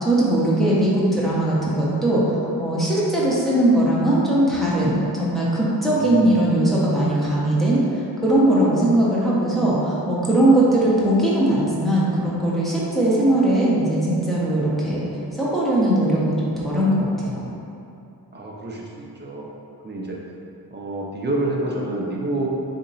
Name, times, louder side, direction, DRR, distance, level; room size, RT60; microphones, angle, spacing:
voice 1, 0.0-2.2 2.6-15.0 15.4-17.4, right 1 dB, ahead, -8 dB, 0.8 m, -20 dB
voice 2, 5.9-6.3 18.3-19.5 19.8-20.2 20.7-22.5, right 2 dB, 30° right, -3 dB, 0.5 m, -28 dB
4.2 x 2.8 x 4.0 m, 2.6 s
wide cardioid pair, 180°, 39 cm